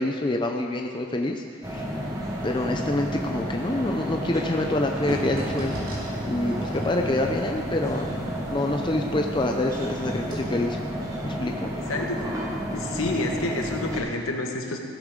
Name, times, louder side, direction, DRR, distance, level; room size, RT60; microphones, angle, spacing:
voice 1, 0.0-1.9 2.4-5.7 6.3-8.1 8.5-10.8 11.2-11.7, left 1 dB, 20° left, 3 dB, 0.5 m, -26 dB
sound 1, 1.6-14.0, equal, 15° right, 1.6 m, -31 dB
sound 2, 5.1-9.9 10.2-10.3, equal, 85° right, 3.7 m, -38 dB
voice 2, 11.9-12.3 12.7-14.8, left 2 dB, 75° left, 2 dB, 1.5 m, -28 dB
15.5 x 12.0 x 3.8 m, 2.2 s
head